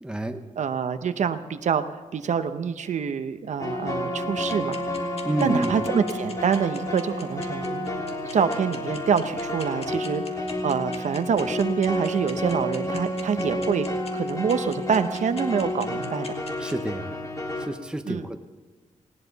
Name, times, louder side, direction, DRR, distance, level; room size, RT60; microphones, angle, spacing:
voice 1, 0.0-0.4 5.3-5.8 16.6-17.1 17.7-18.4, right 1 dB, 5° right, 6 dB, 0.8 m, -28 dB
voice 2, 0.6-1.8 2.1-5.1 5.4-7.9 8.3-13.9 14.1-16.4 18.1-18.3, right 7 dB, 65° right, 10 dB, 0.8 m, -26 dB
sound 1, 3.6-17.7, left 1 dB, 25° left, 1.9 m, -30 dB
sound 2, 4.5-16.7, left 4 dB, 50° left, 1.9 m, -40 dB
19.0 x 18.0 x 4.1 m, 1.3 s
wide cardioid pair, 155°, 13 cm